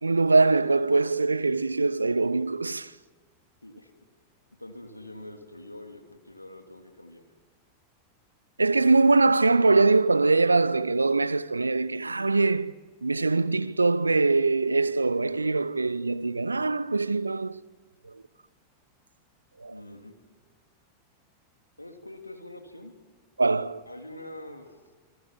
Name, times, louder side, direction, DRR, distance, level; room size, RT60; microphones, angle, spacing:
voice 1, 0.0-2.9 8.6-12.7 13.0-17.6 18.0-18.2 19.6-19.7 23.4-23.8, right 3 dB, 80° right, 0.7 m, -23 dB
voice 2, 4.6-7.2 19.7-20.1 21.8-23.0 23.9-24.8, left 1 dB, 85° left, 3.1 m, -44 dB
29.0 x 23.5 x 7.4 m
figure-of-eight pair, 90°, 0 cm